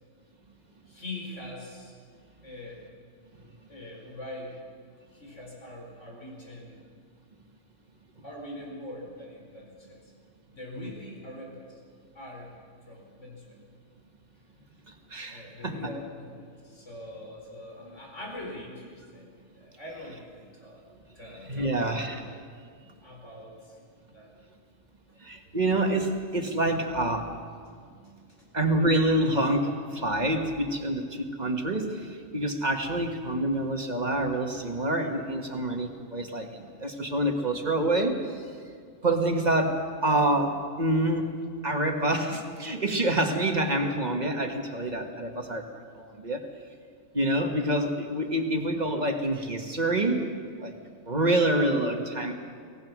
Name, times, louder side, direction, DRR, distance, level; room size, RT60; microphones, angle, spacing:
voice 1, 0.9-2.0 2.4-2.8 3.4-4.6 5.1-6.8 8.2-10.1 10.5-11.8 12.1-13.6 15.3-20.8 21.1-22.1 22.8-23.8 24.1-24.3, left 1 dB, 70° left, -2 dB, 5.0 m, -43 dB
voice 2, 15.1-15.7 21.5-22.2 25.2-27.4 28.5-32.1 32.3-38.2 39.0-41.3 41.6-46.4 47.1-50.2 50.6-50.7 51.0-52.3, right 1 dB, 35° right, 4 dB, 1.7 m, -27 dB
24.0 x 18.0 x 6.1 m, 2.1 s
omnidirectional pair, 1.3 m